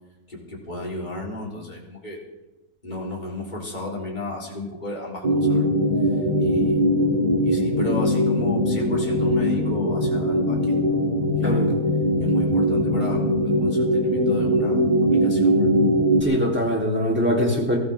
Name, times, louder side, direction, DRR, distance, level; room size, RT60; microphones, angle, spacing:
voice 1, 0.3-2.2 2.8-5.6 6.4-6.8 7.4-10.8 11.4-11.7 12.2-15.7, left 2 dB, 25° left, -2 dB, 3.9 m, -34 dB
sound 1, 5.2-16.2, equal, 25° right, 2.0 m, -21 dB
voice 2, 16.2-17.8, equal, 5° right, -2 dB, 3.5 m, -22 dB
23.0 x 14.5 x 3.6 m, 1.0 s
omnidirectional pair, 1.8 m